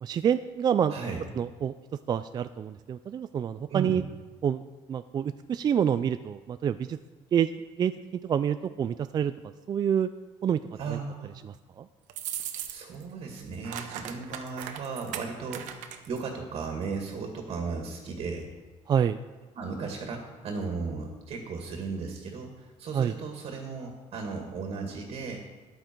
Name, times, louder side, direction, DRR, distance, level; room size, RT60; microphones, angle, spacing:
voice 1, 0.0-1.0 1.4-1.7 2.1-4.0 4.4-4.6 4.9-7.0 7.3-7.9 8.2-9.3 9.7-10.1 10.4-10.6 10.9-11.0 11.4-11.9 18.9-19.2 22.9-23.1, right 8 dB, 30° right, 11 dB, 0.4 m, -27 dB
voice 2, 0.9-1.2 3.7-4.0 10.8-11.4 12.7-18.5 19.5-25.4, right 4 dB, 50° right, 3 dB, 2.1 m, -36 dB
sound 1, 12.1-13.0 13.3-16.2, right 10 dB, 80° right, 1.1 m, -38 dB
14.0 x 11.0 x 4.6 m, 1.2 s
cardioid pair, 140°, 13 cm